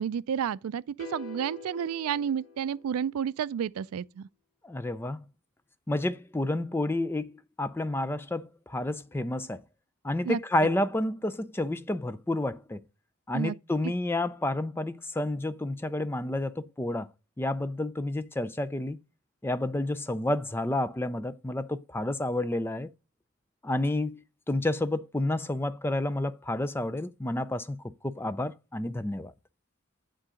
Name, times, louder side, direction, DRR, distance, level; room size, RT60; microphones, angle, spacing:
voice 1, 0.0-4.3 10.2-10.4 13.3-13.6, right 8 dB, 90° right, 0.3 m, -31 dB
sound 1, 1.0-3.3, left 5 dB, 80° left, 1.8 m, -46 dB
voice 2, 4.6-5.2 5.9-9.6 10.0-12.8 13.3-17.1 17.4-19.0 19.4-22.9 23.6-29.3, left 1 dB, 10° left, 0.3 m, -30 dB
10.0 x 3.8 x 5.0 m
head